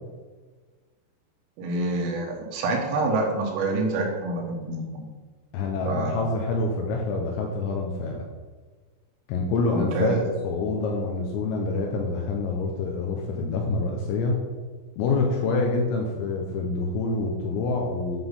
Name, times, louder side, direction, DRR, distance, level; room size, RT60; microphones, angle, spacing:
voice 1, 1.6-5.1 5.9-6.3 9.7-10.2, right 2 dB, 85° right, 1 dB, 4.0 m, -27 dB
voice 2, 5.5-8.3 9.3-14.4 15.0-18.2, left 3 dB, 80° left, 1 dB, 2.8 m, -26 dB
9.9 x 4.0 x 5.3 m, 1.4 s
omnidirectional pair, 5.9 m